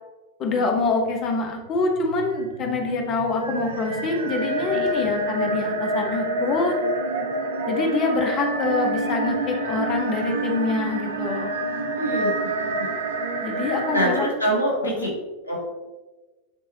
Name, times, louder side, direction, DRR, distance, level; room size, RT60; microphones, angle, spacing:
voice 1, 0.4-6.7 7.7-11.6 13.4-14.3 15.0-15.1, left 3 dB, 35° left, 2 dB, 1.1 m, -25 dB
sound 1, 1.7-14.3, right 2 dB, 65° right, 0.6 m, -27 dB
voice 2, 12.0-12.8 13.9-15.1 15.5-15.6, equal, 85° right, -3 dB, 2.0 m, -25 dB
9.7 x 3.5 x 2.8 m, 1.2 s
figure-of-eight pair, 90°, 0 cm